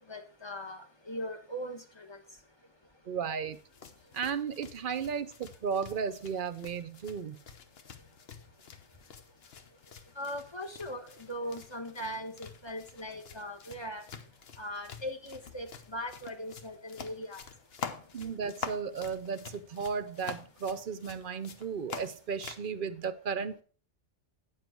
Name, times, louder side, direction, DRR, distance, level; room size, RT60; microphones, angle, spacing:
voice 1, 0.0-2.4 10.1-14.1 14.6-17.5, equal, 20° left, 4 dB, 1.2 m, -40 dB
voice 2, 3.1-3.6 4.1-7.4 18.1-23.6, right 6 dB, 50° right, 12 dB, 0.8 m, -34 dB
sound 1, 3.5-22.7, left 6 dB, 55° left, 1.1 m, -47 dB
9.7 x 7.2 x 4.5 m, 0.38 s
omnidirectional pair, 1.3 m